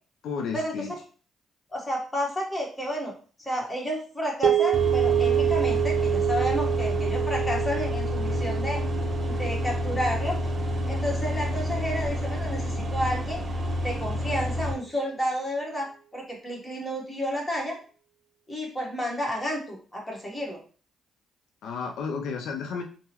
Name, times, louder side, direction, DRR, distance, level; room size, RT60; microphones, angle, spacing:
voice 1, 0.2-0.9 21.6-22.8, left 5 dB, 80° left, 3 dB, 0.4 m, -32 dB
voice 2, 1.7-3.1 3.4-8.8 9.3-10.4 10.9-13.4 13.8-17.8 18.5-20.6, equal, 15° left, -1 dB, 1.1 m, -31 dB
sound 1, 4.4-12.7, right 12 dB, 80° right, 0.5 m, -28 dB
sound 2, 4.7-14.7, left 1 dB, 35° right, 0.7 m, -29 dB
3.7 x 2.0 x 2.8 m, 0.40 s
cardioid pair, 90°, 0 cm